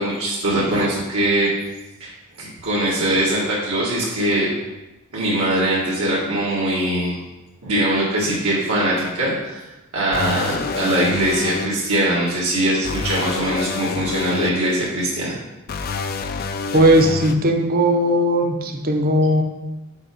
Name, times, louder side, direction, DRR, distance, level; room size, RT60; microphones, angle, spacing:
voice 1, 0.0-1.5 2.0-2.1 2.4-4.5 5.1-7.2 7.6-9.6 9.9-15.4, right 1 dB, 75° right, -7 dB, 1.5 m, -21 dB
sound 1, 10.1-11.7 12.8-14.5 15.7-17.3, left 5 dB, 45° left, 0.4 m, -27 dB
voice 2, 16.7-19.4, right 1 dB, 45° right, 3 dB, 0.7 m, -17 dB
5.4 x 4.7 x 4.9 m, 1.0 s
head